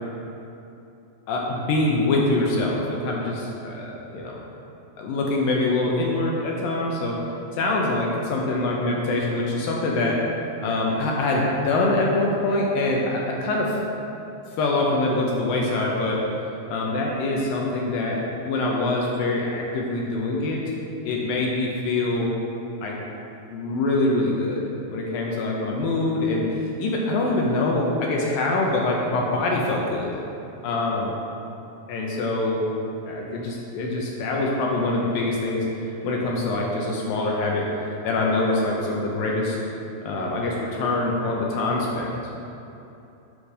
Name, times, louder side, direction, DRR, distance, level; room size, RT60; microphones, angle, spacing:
voice 1, 1.3-4.4 5.0-7.2 7.5-10.2 10.6-13.8 14.6-16.2 16.7-20.6 21.1-22.3 22.8-23.0 23.5-24.6 24.9-30.1 30.6-31.1 31.9-32.6 33.1-37.7 38.0-39.6 40.1-42.1, left 2 dB, 75° left, -2 dB, 2.4 m, -24 dB
8.0 x 5.1 x 4.9 m, 2.9 s
omnidirectional pair, 4.4 m